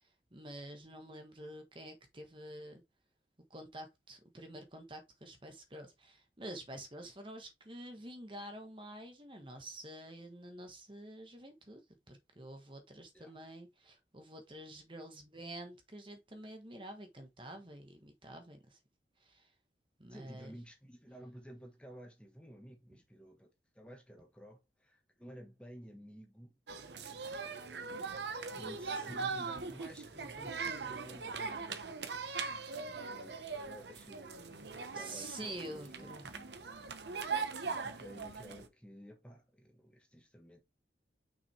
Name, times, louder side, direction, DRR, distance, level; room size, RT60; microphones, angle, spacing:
voice 1, 0.3-2.8 3.5-11.8 12.1-18.8 19.2-19.5 20.0-20.5 32.6-32.8 34.9-36.3, right 1 dB, 30° right, 1.3 m, -48 dB
voice 2, 20.1-23.5 23.7-26.5 27.4-31.9 32.7-36.8 37.6-40.6, equal, 5° left, 1.3 m, -53 dB
sound 1, 26.7-38.7, right 5 dB, 75° right, 1.0 m, -40 dB
6.1 x 5.1 x 3.2 m
head